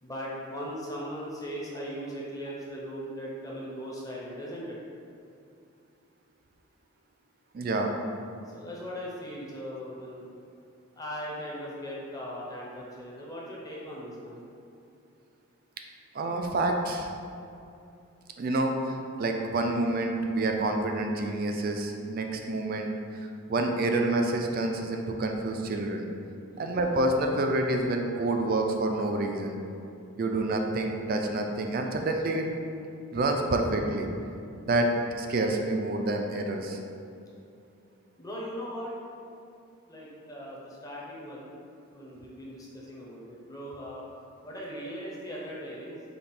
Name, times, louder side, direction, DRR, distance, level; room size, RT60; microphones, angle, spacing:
voice 1, 0.0-4.8 8.5-10.2 10.9-14.4 26.5-26.8 38.2-38.9 39.9-41.5 41.9-44.0 44.4-46.0, equal, 15° left, -5 dB, 0.7 m, -39 dB
voice 2, 7.5-7.9 16.1-17.1 18.4-26.1 26.6-29.6 30.2-32.5 33.1-34.1 34.6-34.9 35.2-36.8, right 2 dB, 45° right, 3 dB, 0.4 m, -28 dB
5.2 x 2.4 x 4.3 m, 2.6 s
head